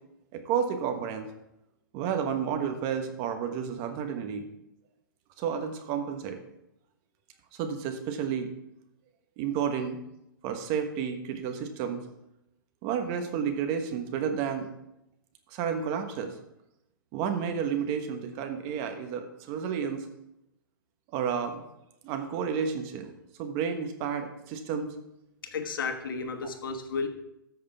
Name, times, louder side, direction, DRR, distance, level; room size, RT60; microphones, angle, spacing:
voice 1, 0.3-1.3 1.9-4.5 5.4-6.4 7.5-8.5 9.4-10.0 10.4-12.0 12.8-14.7 15.5-16.3 17.1-20.1 21.1-21.6 22.0-23.1 23.4-24.9, right 7 dB, 40° right, 6 dB, 1.4 m, -31 dB
voice 2, 25.4-27.1, left 5 dB, 70° left, 6 dB, 1.3 m, -33 dB
14.0 x 6.5 x 3.6 m, 0.86 s
hypercardioid pair, 125°, 12 cm